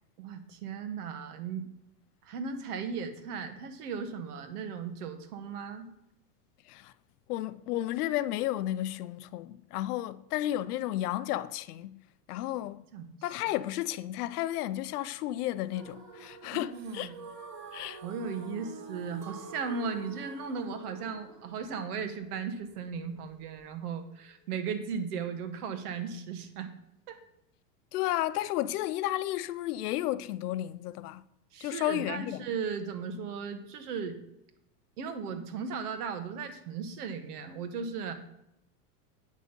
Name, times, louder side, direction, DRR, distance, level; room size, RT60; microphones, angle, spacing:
voice 1, 0.2-1.6 2.2-5.9 12.9-13.1 16.5-17.1 18.0-26.7 27.1-27.2 31.5-34.2 35.0-38.2, right 6 dB, 75° right, 1.6 m, -36 dB
voice 2, 7.3-12.0 12.3-12.8 13.2-17.1 17.7-18.0 27.9-31.2 31.6-32.4, left 14 dB, 75° left, 0.7 m, -32 dB
sound 1, 15.7-23.7, right 4 dB, 35° right, 2.0 m, -48 dB
Chink clink, 19.2-23.5 23.9-24.5, left 1 dB, 5° right, 1.9 m, -50 dB
8.8 x 6.4 x 5.3 m
supercardioid pair, 145°, 46 cm